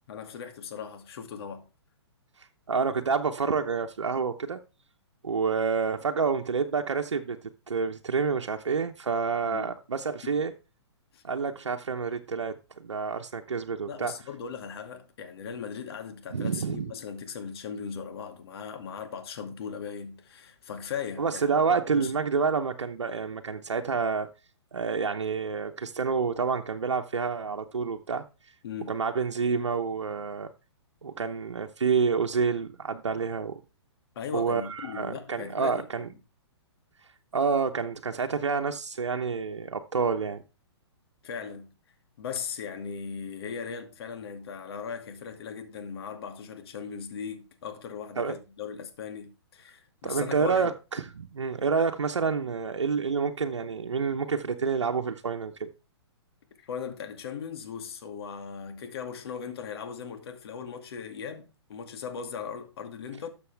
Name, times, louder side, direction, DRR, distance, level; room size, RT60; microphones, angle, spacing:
voice 1, 0.1-1.7 9.4-9.7 10.2-10.3 11.1-11.2 13.9-21.6 21.9-22.1 28.6-29.0 34.1-35.8 41.2-41.7 42.2-50.7 56.6-63.3, left 6 dB, 60° left, 2.3 m, -38 dB
voice 2, 2.7-4.6 5.2-7.4 7.7-10.5 11.2-14.1 16.3-16.9 21.2-24.3 24.7-28.2 28.9-30.5 31.0-33.6 34.3-36.1 37.3-40.4 48.2-48.3 50.0-55.7, right 5 dB, 85° right, 1.0 m, -28 dB
12.5 x 6.9 x 3.4 m
hypercardioid pair, 130°, 15 cm